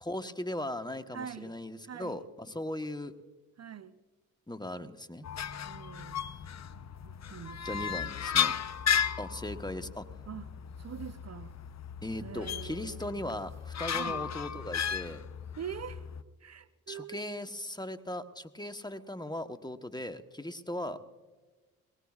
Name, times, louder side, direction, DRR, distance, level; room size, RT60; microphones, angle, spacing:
voice 1, 0.0-3.1 4.5-5.2 7.6-8.6 9.2-10.1 12.0-15.3 16.9-21.0, left 1 dB, 10° left, 9 dB, 1.0 m, -38 dB
voice 2, 1.1-1.5 1.9-2.3 3.6-4.0 5.6-6.2 7.0-8.1 10.3-10.5 10.8-11.5 12.2-13.2 13.9-14.3 15.6-16.0 16.4-17.2, right 8 dB, 40° right, 12 dB, 0.7 m, -44 dB
sound 1, 5.2-16.2, left 8 dB, 45° left, 0.7 m, -35 dB
22.0 x 19.0 x 2.4 m, 1.3 s
hypercardioid pair, 45°, 39 cm